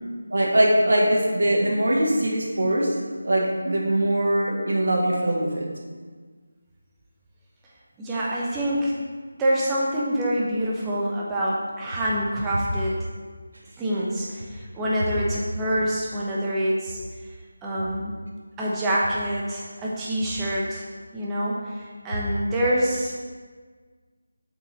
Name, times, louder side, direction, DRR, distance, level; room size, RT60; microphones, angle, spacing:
voice 1, 0.3-3.0 3.2-5.7, right 1 dB, 65° right, -1 dB, 1.6 m, -22 dB
voice 2, 8.0-8.9 9.4-12.9 13.8-17.0 17.6-18.1 18.6-20.8 21.1-23.1, equal, 10° right, -6 dB, 1.1 m, -26 dB
7.8 x 5.4 x 4.3 m, 1.5 s
figure-of-eight pair, 165°, 0 cm